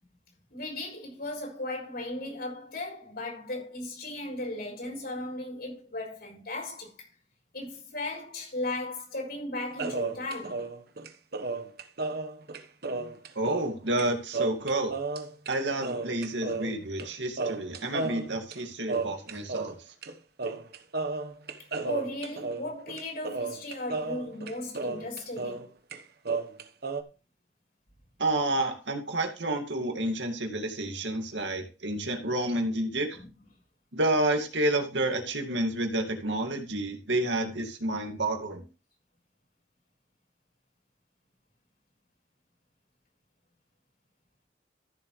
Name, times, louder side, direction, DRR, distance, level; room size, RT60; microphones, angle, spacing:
voice 1, 0.5-7.1 7.5-10.7 21.8-25.7 33.1-33.3, left 2 dB, 60° left, 6.7 m, -36 dB
sound 1, 9.8-13.7 14.0-14.1 14.3-15.5 15.8-17.1 17.4-19.7 20.0-20.1 20.4-25.7 25.9-27.0, right 3 dB, 60° right, 1.2 m, -33 dB
voice 2, 13.3-15.0 15.5-19.8 28.2-33.2 33.9-38.6, right 1 dB, 85° right, 2.3 m, -29 dB
14.0 x 7.5 x 3.2 m
head